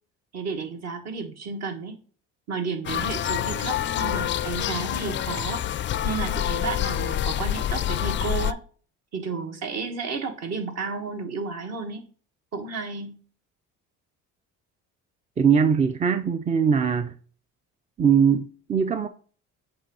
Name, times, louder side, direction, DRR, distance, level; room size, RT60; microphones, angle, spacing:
voice 1, 0.3-2.0 2.5-8.6 9.1-12.0 12.5-13.2, right 4 dB, 55° right, 1.6 m, -32 dB
sound 1, 2.9-8.5, left 11 dB, 35° left, 0.4 m, -27 dB
voice 2, 15.4-17.1 18.0-19.1, right 7 dB, 20° right, 0.5 m, -21 dB
7.7 x 2.7 x 5.5 m
cardioid pair, 95°, 32 cm